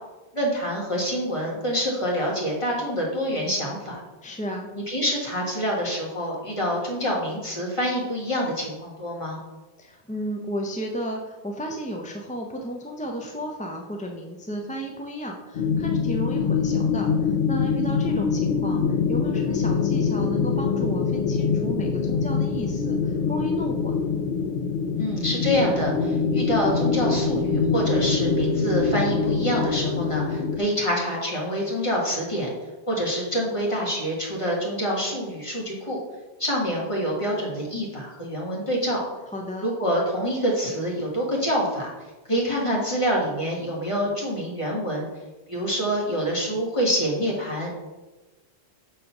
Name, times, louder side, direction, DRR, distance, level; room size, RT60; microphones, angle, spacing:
voice 1, 0.3-4.0 4.7-9.4 25.0-32.5 32.9-36.0 36.4-39.0 39.6-41.9 42.3-45.1 45.5-48.0, equal, 30° left, -4 dB, 1.9 m, -26 dB
voice 2, 4.2-4.7 9.8-24.0 39.3-39.7, right 1 dB, 10° left, 1 dB, 0.4 m, -33 dB
sound 1, 15.6-30.6, left 5 dB, 65° left, 0.7 m, -24 dB
6.4 x 3.9 x 5.9 m, 1.1 s
omnidirectional pair, 1.1 m